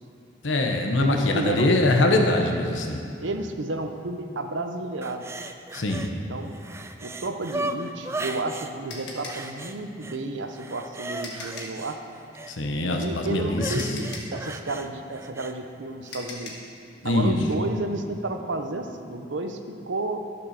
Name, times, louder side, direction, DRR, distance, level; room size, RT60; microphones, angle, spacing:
voice 1, 0.4-3.0 5.7-6.1 12.5-13.9 17.0-17.4, left 2 dB, 85° left, 3 dB, 1.0 m, -23 dB
voice 2, 1.0-1.7 3.2-5.2 6.1-6.5 7.0-12.0 13.0-14.1 14.3-16.5 17.0-20.2, right 2 dB, 75° right, 6 dB, 0.9 m, -31 dB
sound 1, 5.0-6.1 6.5-8.7 9.3-10.2 10.5-12.5 13.5-15.5 16.0-16.2, right 2 dB, 15° right, 0.4 m, -36 dB
sound 2, 8.9-11.9 13.3-13.4 13.8-16.7, left 2 dB, 60° left, 1.9 m, -41 dB
12.5 x 7.1 x 6.6 m, 2.5 s
head